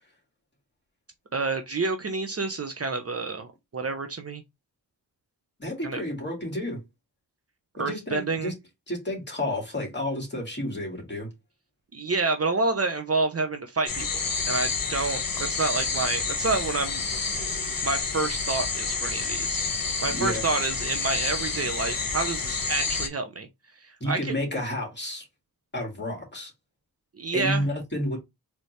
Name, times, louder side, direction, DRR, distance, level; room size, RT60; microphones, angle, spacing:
voice 1, 1.3-3.5 3.7-4.4 5.8-6.0 7.8-8.5 11.9-17.1 17.8-19.7 20.0-23.5 23.8-24.3 27.2-27.7, right 3 dB, 40° right, 0.8 m, -28 dB
voice 2, 5.6-6.8 7.8-8.5 8.9-11.3 20.1-20.4 24.0-25.3 25.7-26.5 27.3-28.2, left 1 dB, 25° left, 2.2 m, -31 dB
sound 1, 13.9-23.1, left 4 dB, 60° left, 1.2 m, -29 dB
4.2 x 3.1 x 3.2 m
cardioid pair, 65°, 39 cm